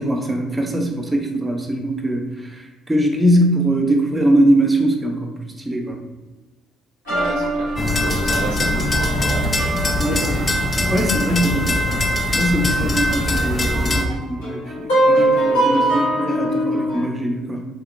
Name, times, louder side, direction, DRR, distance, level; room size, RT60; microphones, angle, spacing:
voice 1, 0.0-2.2 2.9-5.3 5.7-6.0 10.0-10.4 10.8-12.0 12.3-17.7, right 1 dB, 20° right, 2 dB, 0.7 m, -21 dB
sound 1, 7.1-12.2 12.6-12.7 13.3-17.1, right 1 dB, 80° left, 1.1 m, -23 dB
voice 2, 7.1-10.6, right 3 dB, 65° right, -1 dB, 0.4 m, -32 dB
sound 2, 7.8-14.0, left 1 dB, 25° left, 0.4 m, -21 dB
3.6 x 2.8 x 2.5 m, 1.2 s
hypercardioid pair, 50°, 0 cm